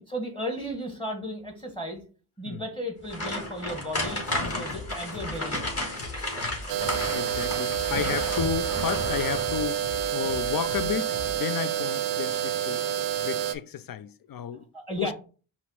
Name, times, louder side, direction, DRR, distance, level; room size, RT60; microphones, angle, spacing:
voice 1, 0.0-2.0 2.4-5.9 14.7-15.1, equal, 10° left, 1.2 m, -35 dB
sound 1, 3.0-9.7 10.1-10.3 10.7-10.8, left 1 dB, 30° left, 1.9 m, -33 dB
sound 2, 4.1-11.4, left 3 dB, 80° left, 0.9 m, -42 dB
voice 2, 4.3-4.7 6.3-6.6 7.1-12.8 13.2-14.7 15.0-15.1, left 9 dB, 50° left, 0.5 m, -33 dB
sound 3, 6.7-13.5, right 10 dB, 85° right, 0.7 m, -28 dB
5.5 x 2.1 x 4.6 m
cardioid pair, 55°, 46 cm